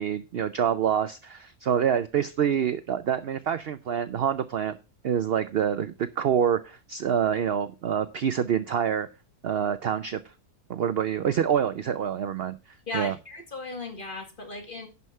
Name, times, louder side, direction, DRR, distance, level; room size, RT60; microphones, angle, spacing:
voice 1, 0.0-4.8 5.0-9.1 9.4-10.2 10.7-12.6 12.9-13.1, right 8 dB, 60° right, 0.6 m, -26 dB
voice 2, 12.9-14.9, left 3 dB, 35° left, 2.1 m, -36 dB
11.0 x 5.6 x 5.5 m
omnidirectional pair, 1.6 m